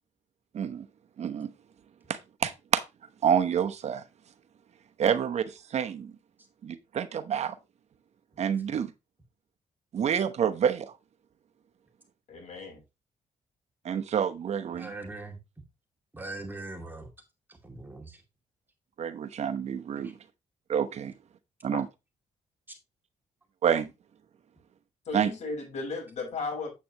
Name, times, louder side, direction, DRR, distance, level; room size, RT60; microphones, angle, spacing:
voice 1, 0.5-0.8 1.2-1.5 2.1-2.8 3.2-4.0 5.0-6.1 6.6-7.5 8.4-8.9 9.9-10.9 13.8-14.9 19.0-20.1 20.7-21.1 21.6-21.9 23.6-23.9 25.1-25.3, right 8 dB, 60° right, 1.0 m, -28 dB
voice 2, 12.3-12.8 21.7-21.8 25.0-26.7, left 3 dB, 60° left, 6.4 m, -35 dB
voice 3, 14.7-15.4 16.1-17.1 17.5-18.2 20.0-20.1, right 2 dB, 15° right, 2.5 m, -41 dB
8.6 x 8.4 x 2.9 m
cardioid pair, 105°, 13 cm